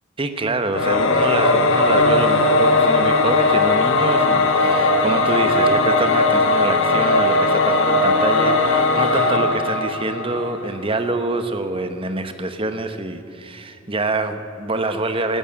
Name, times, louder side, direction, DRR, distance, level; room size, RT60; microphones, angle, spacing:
voice 1, 0.2-15.4, right 2 dB, 25° right, 8 dB, 1.0 m, -25 dB
Singing / Musical instrument, 0.7-10.8, left 2 dB, 70° left, 1.4 m, -18 dB
13.0 x 13.0 x 8.5 m, 2.5 s
head